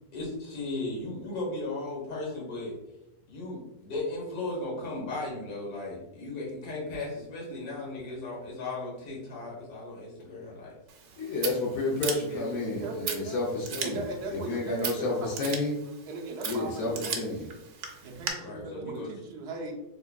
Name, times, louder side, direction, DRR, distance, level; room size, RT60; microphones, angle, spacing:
voice 1, 0.1-2.8 3.3-10.8 12.2-12.6 18.4-19.1, left 2 dB, 90° left, -4 dB, 1.7 m, -36 dB
Scissors, 10.9-18.3, right 6 dB, 80° right, 1.0 m, -38 dB
voice 2, 11.2-14.0 14.3-15.8 16.5-16.9 17.2-17.5, left 2 dB, 70° left, -4 dB, 1.1 m, -30 dB
voice 3, 12.7-13.4 13.8-15.6 16.1-17.3 18.0-19.7, right 3 dB, 60° right, 1 dB, 0.7 m, -38 dB
3.5 x 3.4 x 2.2 m, 0.93 s
omnidirectional pair, 1.6 m